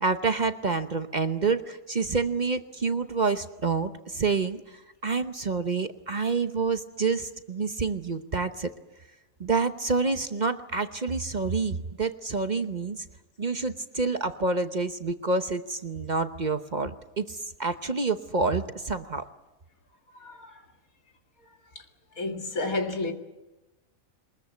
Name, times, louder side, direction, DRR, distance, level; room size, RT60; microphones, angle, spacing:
voice 1, 0.0-8.7 9.4-13.0 13.4-19.3, right 4 dB, 35° right, 0.9 m, -28 dB
voice 2, 20.2-20.6 22.2-23.1, left 2 dB, 90° left, 2.5 m, -30 dB
23.0 x 21.0 x 8.2 m
omnidirectional pair, 1.4 m